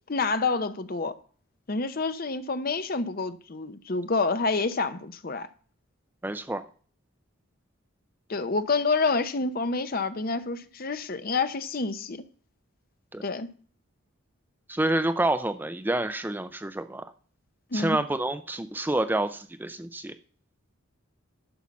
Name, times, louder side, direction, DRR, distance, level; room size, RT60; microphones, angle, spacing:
voice 1, 0.1-1.2 1.7-5.5 8.3-12.2 13.2-13.5 17.7-18.0, left 4 dB, 45° left, 0.7 m, -28 dB
voice 2, 6.2-6.6 13.1-13.2 14.7-17.1 17.7-20.1, right 1 dB, 10° right, 0.4 m, -28 dB
11.5 x 5.6 x 7.3 m
head